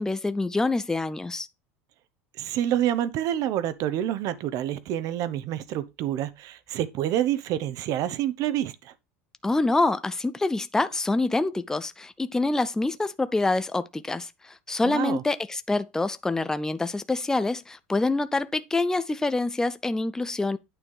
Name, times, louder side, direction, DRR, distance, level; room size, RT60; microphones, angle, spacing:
voice 1, 0.0-1.5 9.4-20.6, left 2 dB, 10° left, 0.5 m, -26 dB
voice 2, 2.4-8.9 14.8-15.2, right 11 dB, 55° right, 0.9 m, -28 dB
9.1 x 3.5 x 4.7 m
supercardioid pair, 100°, 7 cm